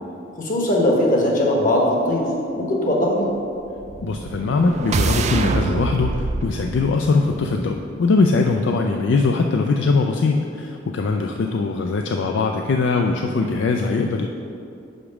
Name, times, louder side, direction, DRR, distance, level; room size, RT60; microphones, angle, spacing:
voice 1, 0.3-2.3 2.5-3.3 11.0-11.2, left 1 dB, 45° left, -2 dB, 1.2 m, -20 dB
sound 1, 3.8-8.0, right 3 dB, 35° right, 0.3 m, -25 dB
voice 2, 4.0-14.3, left 4 dB, 65° left, 3 dB, 0.4 m, -21 dB
5.1 x 4.8 x 6.0 m, 2.6 s
head